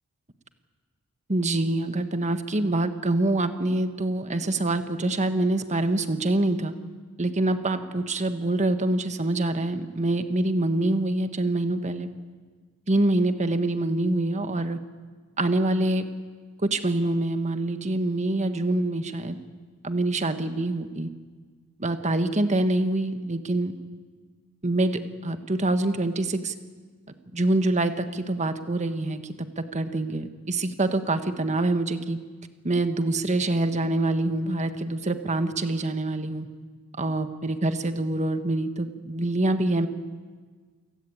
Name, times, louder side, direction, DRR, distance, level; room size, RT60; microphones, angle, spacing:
voice 1, 1.3-6.7 7.2-12.1 12.9-14.8 15.4-16.0 16.6-19.4 19.8-21.1 21.8-23.7 24.6-26.5 27.3-29.2 29.6-32.2 32.6-36.5 37.0-39.9, right 2 dB, 30° right, 9 dB, 1.5 m, -25 dB
28.5 x 18.0 x 8.9 m, 1.5 s
head